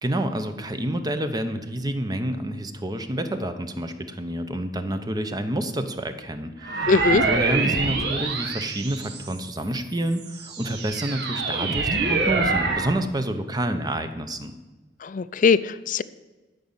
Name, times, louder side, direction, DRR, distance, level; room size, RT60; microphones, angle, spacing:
voice 1, 0.0-14.5, right 1 dB, 20° right, 8 dB, 0.8 m, -28 dB
sound 1, 6.6-9.5 10.1-13.0, right 3 dB, 60° right, 1.4 m, -26 dB
voice 2, 6.9-7.2 15.0-16.0, left 4 dB, 45° left, 16 dB, 0.4 m, -20 dB
13.0 x 5.3 x 7.3 m, 1.2 s
head